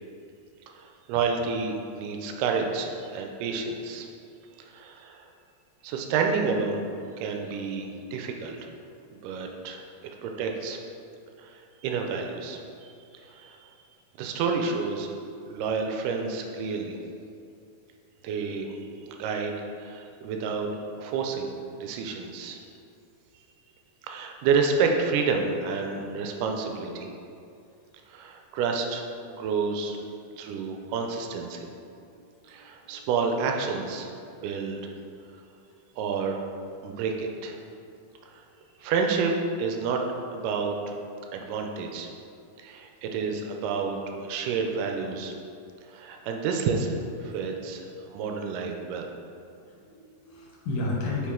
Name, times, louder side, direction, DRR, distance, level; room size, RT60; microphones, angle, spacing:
voice 1, 0.7-4.1 4.6-5.3 5.8-6.8 7.2-8.7 9.2-9.8 10.2-10.8 11.4-13.6 14.2-15.1 15.5-17.0 18.2-20.7 21.0-21.5 21.8-22.6 24.1-27.1 28.1-30.0 30.4-31.7 32.5-34.1 34.4-34.9 36.0-36.4 36.8-37.6 38.3-38.4 38.8-40.0 40.3-41.0 41.3-42.1 42.6-45.3 45.9-49.2, right 5 dB, 85° right, 3 dB, 1.9 m, -29 dB
voice 2, 32.0-33.1 35.7-35.8 37.9-38.0 38.8-38.9 47.7-48.4 49.5-51.3, left 2 dB, 65° left, -4 dB, 2.3 m, -36 dB
7.2 x 4.6 x 3.7 m, 2.5 s
omnidirectional pair, 4.3 m